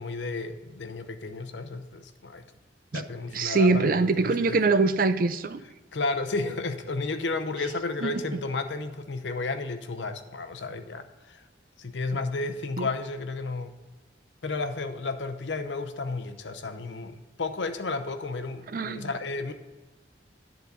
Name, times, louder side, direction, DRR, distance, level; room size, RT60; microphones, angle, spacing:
voice 1, 0.0-2.5 2.9-4.6 5.9-11.4 11.8-13.8 14.4-19.5, left 3 dB, 80° left, 8 dB, 0.7 m, -32 dB
voice 2, 3.3-5.6 8.0-8.1 12.8-12.9 18.7-19.1, right 3 dB, 50° right, 12 dB, 0.4 m, -23 dB
10.5 x 4.0 x 6.8 m, 1.3 s
head